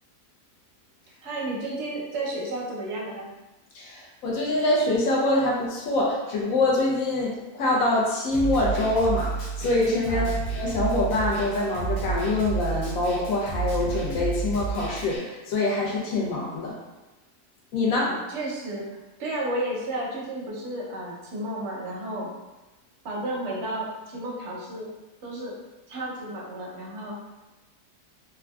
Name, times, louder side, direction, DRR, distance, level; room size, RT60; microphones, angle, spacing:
voice 1, 1.2-3.3 10.1-10.4 18.0-22.3 23.0-24.9 25.2-25.5 25.9-27.1, right 1 dB, 60° right, -3 dB, 0.9 m, -32 dB
voice 2, 3.7-10.3 10.5-16.8 17.7-18.2, left 2 dB, 65° left, -3 dB, 1.0 m, -25 dB
Snare drum, 8.3-15.2, right 5 dB, 85° left, 1.3 m, -31 dB
3.5 x 2.3 x 2.2 m, 1.1 s
omnidirectional pair, 1.7 m